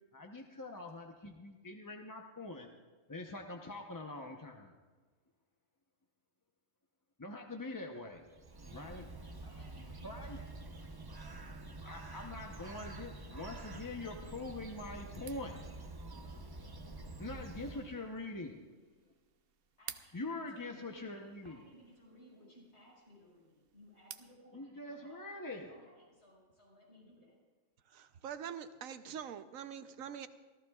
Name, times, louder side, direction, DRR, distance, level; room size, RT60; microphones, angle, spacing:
voice 1, 0.1-2.7 3.1-4.7 7.2-8.2 8.7-9.1 10.0-10.4 11.8-15.6 17.2-18.6 20.1-21.6 24.5-25.7, left 2 dB, 20° left, 2 dB, 0.6 m, -44 dB
Bird, 8.2-18.2, right 2 dB, 25° right, 0.6 m, -48 dB
voice 2, 9.3-11.4 19.8-27.4, equal, 50° left, -3 dB, 5.9 m, -61 dB
sound 1, 15.1-24.4, right 8 dB, 55° right, 0.8 m, -56 dB
voice 3, 27.9-30.3, right 8 dB, 80° right, 11 dB, 1.1 m, -44 dB
27.5 x 15.0 x 2.4 m, 1.4 s
omnidirectional pair, 1.4 m